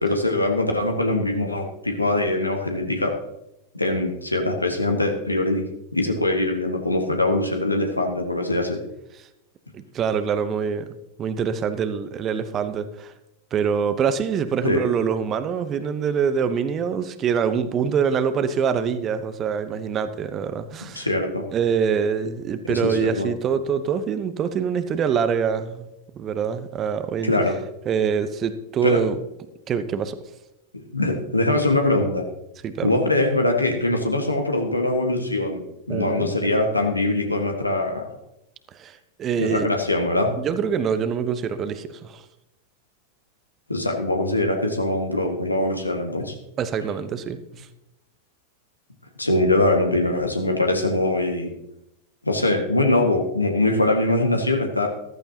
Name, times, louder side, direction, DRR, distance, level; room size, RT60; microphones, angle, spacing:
voice 1, 0.0-3.2 3.7-5.6 5.9-8.8 14.6-14.8 20.8-21.4 22.7-23.3 27.2-27.6 28.8-29.0 30.9-32.2 32.8-38.1 39.4-40.3 43.7-46.4 49.2-51.5 52.2-54.9, left 2 dB, 85° left, 1.7 m, -22 dB
voice 2, 9.7-10.9 11.2-13.1 13.5-21.1 21.5-25.9 26.2-27.4 27.9-29.2 29.7-30.2 32.6-32.9 35.9-36.3 38.7-39.7 40.3-42.2 46.6-47.7, right 7 dB, 30° right, 0.9 m, -25 dB
14.5 x 14.0 x 2.9 m
figure-of-eight pair, 90°, 0 cm